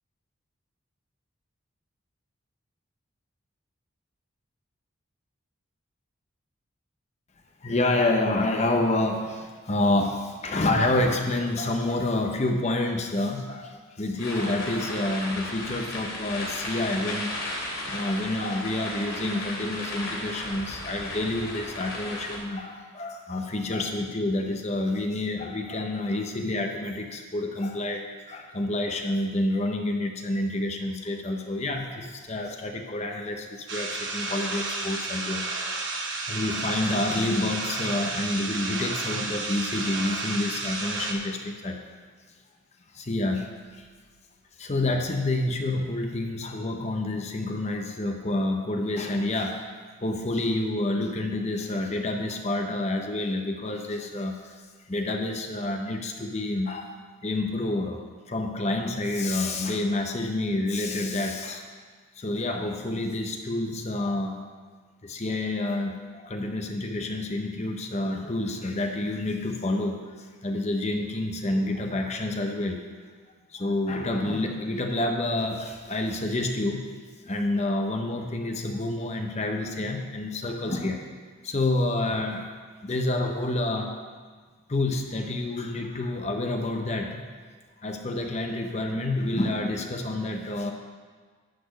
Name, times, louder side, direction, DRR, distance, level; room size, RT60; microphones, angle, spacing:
voice 1, 7.6-17.6 17.8-35.7 36.3-41.8 42.9-43.9 44.6-54.6 54.9-57.0 57.2-61.6 62.2-64.4 65.0-72.8 73.5-76.9 77.2-81.0 81.4-82.5 82.8-84.0 84.7-87.2 87.8-90.7, left 2 dB, 30° left, 3 dB, 0.7 m, -28 dB
sound 1, 14.2-22.4, left 1 dB, 70° left, 3.0 m, -35 dB
sound 2, 33.7-41.1, right 3 dB, 55° right, 1.1 m, -32 dB
11.5 x 4.2 x 8.0 m, 1.5 s
head